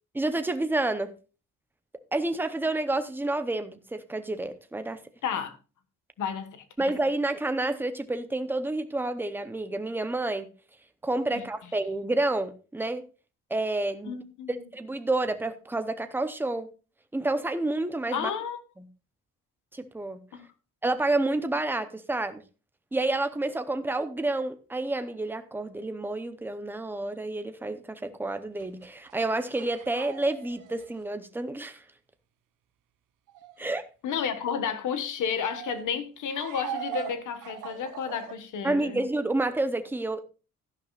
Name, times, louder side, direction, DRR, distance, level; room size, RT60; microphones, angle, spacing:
voice 1, 0.1-1.1 2.1-5.0 6.8-10.5 11.0-13.0 13.5-14.2 14.7-16.7 17.1-18.3 18.8-18.9 19.7-20.2 20.8-22.4 22.9-31.8 33.6-33.8 38.6-40.2, right 2 dB, 5° right, 0.7 m, -29 dB
voice 2, 5.2-5.6 6.2-6.6 11.3-11.4 14.0-14.6 18.1-18.6 20.3-20.5 34.0-39.0, left 7 dB, 70° left, 1.4 m, -32 dB
sound 1, 28.6-31.0 33.3-33.6 35.2-35.8 36.3-38.3, right 10 dB, 80° right, 0.9 m, -40 dB
12.5 x 11.0 x 2.4 m
cardioid pair, 170°, 31 cm